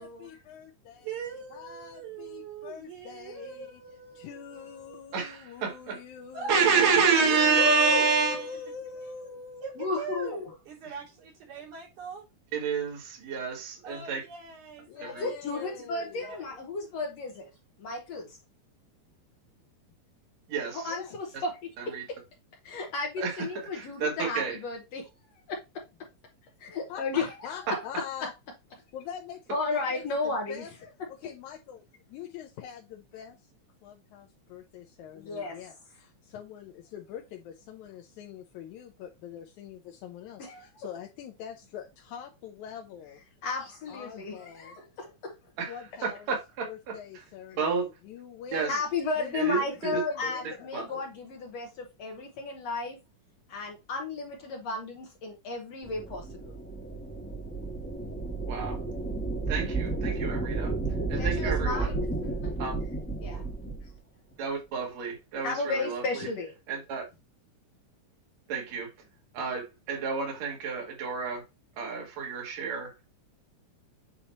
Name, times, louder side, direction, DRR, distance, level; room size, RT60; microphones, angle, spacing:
voice 1, 0.0-3.8 4.2-10.0 14.9-16.3 20.9-21.2 26.9-28.3 28.9-30.7 31.1-31.8 32.1-33.5 33.8-43.2 43.9-44.8 45.7-46.3 46.6-48.8 49.2-50.7, left 7 dB, 85° left, 2.2 m, -44 dB
voice 2, 1.0-5.1 6.3-7.6 9.6-12.3 13.8-15.1 15.4-16.6, right 5 dB, 80° right, 4.2 m, -42 dB
voice 3, 5.1-6.0 6.5-8.6 10.9-11.0 12.5-14.2 15.0-15.3 20.5-21.0 21.8-22.0 23.2-24.6 27.7-27.8 45.6-47.2 47.6-47.8 48.5-48.8 49.3-51.0 58.5-58.8 59.5-60.8 61.1-61.9 62.6-62.8 64.4-66.3 66.7-67.1 68.5-68.9 69.3-71.4 71.8-73.0, right 5 dB, 65° right, 3.0 m, -29 dB
voice 4, 7.6-8.0 9.8-10.4 15.2-17.5 17.8-18.4 20.7-21.5 21.9-22.2 22.6-25.0 25.5-25.6 26.6-27.8 29.5-30.6 35.2-35.6 40.4-40.7 43.4-45.3 48.7-53.0 53.5-56.5 61.1-62.1 62.4-62.5 63.2-63.5 65.4-66.5, left 3 dB, 65° left, 2.1 m, -33 dB
sound 1, 55.8-63.9, right 3 dB, 10° left, 0.5 m, -32 dB
8.6 x 2.9 x 4.2 m
omnidirectional pair, 3.4 m